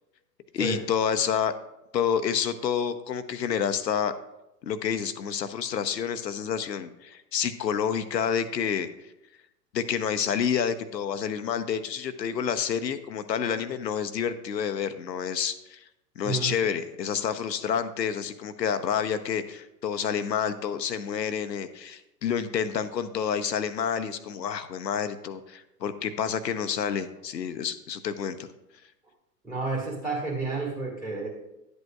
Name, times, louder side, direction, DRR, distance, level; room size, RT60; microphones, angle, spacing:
voice 1, 0.5-1.5 1.9-4.1 4.6-8.9 9.7-15.8 16.2-28.5, left 7 dB, 80° left, 11 dB, 0.8 m, -29 dB
voice 2, 29.4-31.3, right 3 dB, 5° right, -2 dB, 1.5 m, -30 dB
11.0 x 8.1 x 2.3 m, 0.91 s
figure-of-eight pair, 105°, 50 cm